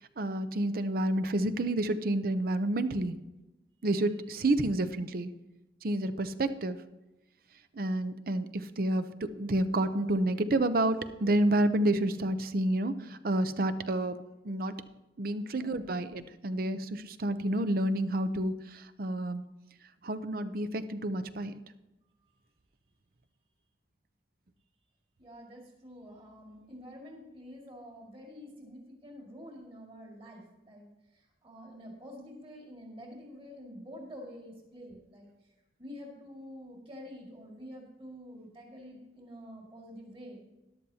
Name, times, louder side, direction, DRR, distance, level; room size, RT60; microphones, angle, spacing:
voice 1, 0.0-3.2 3.8-5.3 5.8-6.8 7.7-14.2 14.4-14.7 15.2-19.4 20.0-21.5, right 1 dB, 55° right, 11 dB, 0.6 m, -29 dB
voice 2, 15.5-16.0 25.2-30.9 31.4-35.3 35.8-40.5, equal, 30° right, -1 dB, 2.1 m, -48 dB
13.0 x 11.0 x 2.8 m, 1.0 s
head